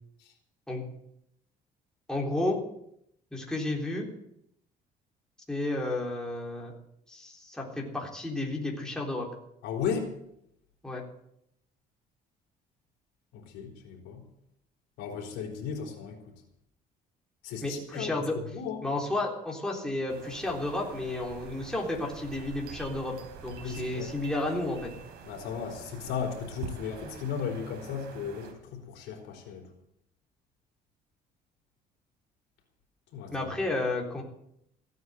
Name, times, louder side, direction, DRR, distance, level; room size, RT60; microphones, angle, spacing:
voice 1, 2.1-2.6 3.3-4.1 5.5-6.7 7.1-9.3 10.8-11.0 17.6-18.4 18.8-23.2 23.4-24.9 33.3-34.2, left 2 dB, 5° left, -1 dB, 3.6 m, -32 dB
voice 2, 9.6-10.1 13.3-14.2 15.0-16.2 17.4-18.8 23.6-24.1 25.2-29.6 33.1-33.5, left 7 dB, 90° left, 1 dB, 3.8 m, -35 dB
sound 1, 20.1-28.5, right 5 dB, 80° right, 3.4 m, -46 dB
15.5 x 9.5 x 8.0 m, 0.75 s
cardioid pair, 110°, 17 cm